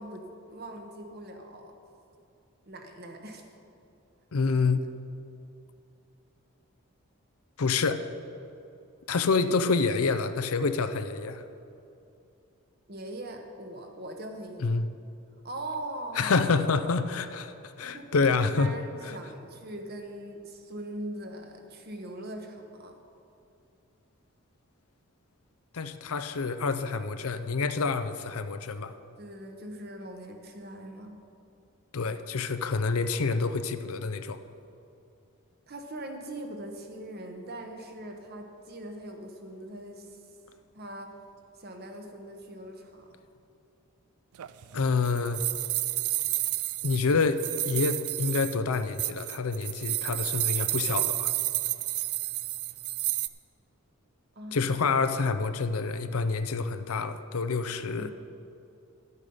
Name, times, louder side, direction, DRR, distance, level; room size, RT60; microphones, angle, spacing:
voice 1, 0.0-1.7 2.6-3.4 12.9-14.8 15.4-16.4 17.8-23.0 29.2-31.2 35.7-40.2 40.7-41.1 41.6-43.1 54.3-54.7 57.9-58.1, right 1 dB, 45° right, 4 dB, 1.1 m, -41 dB
voice 2, 4.3-4.8 7.6-8.0 9.1-11.4 14.6-14.9 16.2-18.7 19.0-19.1 25.7-28.9 31.9-34.4 44.7-45.4 46.8-51.4 54.5-58.1, left 4 dB, 75° left, 10 dB, 0.6 m, -27 dB
sound 1, 44.4-53.3, right 18 dB, 80° right, 0.4 m, -31 dB
12.5 x 8.2 x 5.5 m, 2.6 s
head